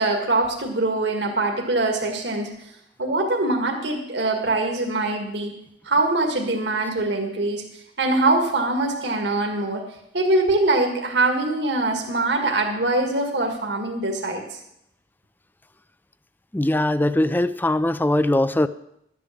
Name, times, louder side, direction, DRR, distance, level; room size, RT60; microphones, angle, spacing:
voice 1, 0.0-2.5 3.0-5.5 5.8-7.6 8.0-9.8 10.1-14.6, right 2 dB, 65° right, 2 dB, 1.8 m, -23 dB
voice 2, 16.5-18.7, left 1 dB, 10° left, 14 dB, 0.4 m, -21 dB
12.0 x 8.5 x 7.1 m, 0.79 s
head